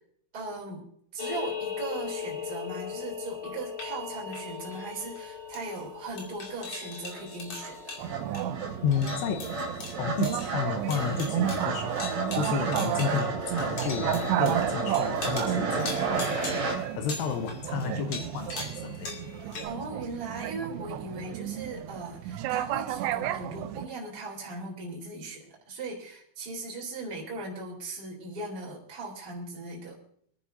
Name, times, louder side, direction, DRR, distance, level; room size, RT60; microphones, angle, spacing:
voice 1, 0.3-0.8 1.1-7.8 19.6-30.0, right 3 dB, 20° right, -1 dB, 3.6 m, -38 dB
sound 1, 1.2-19.6, left 5 dB, 40° left, 3.0 m, -39 dB
sound 2, 6.7-6.8 7.1-16.8, right 2 dB, 45° right, 4.8 m, -34 dB
sound 3, 8.0-23.9, right 12 dB, 85° right, 2.4 m, -32 dB
voice 2, 8.8-9.6 10.0-19.1, left 7 dB, 75° left, 5 dB, 2.6 m, -32 dB
26.0 x 10.0 x 2.7 m, 0.62 s
omnidirectional pair, 5.6 m